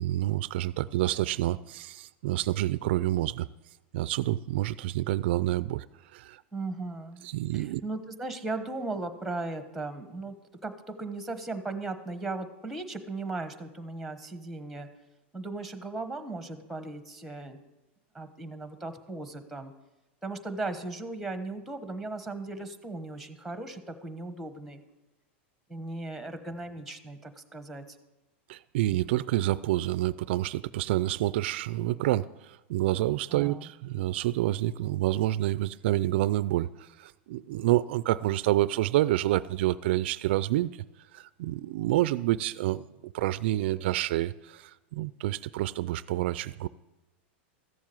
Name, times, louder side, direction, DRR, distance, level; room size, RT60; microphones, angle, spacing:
voice 1, 0.0-3.5 3.9-5.9 6.1-6.4 7.2-7.8 28.5-40.8 41.1-46.7, right 15 dB, 65° right, 0.4 m, -28 dB
voice 2, 6.5-7.2 7.5-10.3 10.6-14.9 15.3-17.6 18.1-19.7 20.2-24.8 25.7-27.8 33.3-33.7, right 2 dB, ahead, 1.1 m, -37 dB
14.0 x 7.3 x 7.7 m
supercardioid pair, 145°, 6 cm